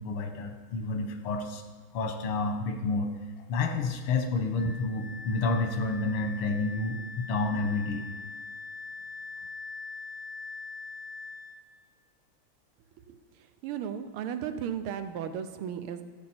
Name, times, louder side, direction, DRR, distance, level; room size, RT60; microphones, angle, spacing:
voice 1, 0.0-1.6 1.9-3.1 3.5-8.0, left 3 dB, 85° left, 5 dB, 1.9 m, -29 dB
Wind instrument woodwind instrument, 4.6-11.6, left 4 dB, 65° left, 2.0 m, -42 dB
voice 2, 13.6-16.0, right 8 dB, 80° right, 9 dB, 1.6 m, -35 dB
13.5 x 7.4 x 4.3 m, 1.5 s
omnidirectional pair, 2.4 m